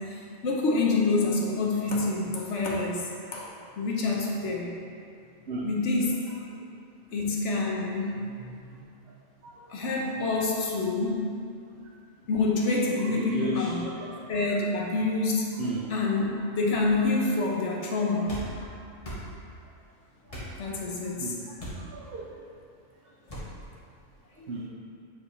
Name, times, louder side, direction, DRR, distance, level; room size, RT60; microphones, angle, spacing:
voice 1, 0.0-3.5 3.8-4.7 5.6-6.1 7.1-8.2 9.7-11.3 12.3-14.0 14.3-15.5 15.9-16.3 16.5-18.7 20.6-21.6 24.4-24.5, left 3 dB, 65° left, -2 dB, 1.3 m, -27 dB
voice 2, 8.5-8.8 9.4-9.5 13.1-14.1 15.6-15.9 19.1-19.2 21.2-21.4 21.8-22.3 24.5-24.7, right 1 dB, 55° right, -2 dB, 0.8 m, -34 dB
sound 1, 18.3-18.5 19.0-19.2 20.3-20.5 21.6-21.8 23.3-23.5, equal, 30° left, 1.4 m, -37 dB
8.2 x 5.0 x 3.2 m, 2.3 s
omnidirectional pair, 1.3 m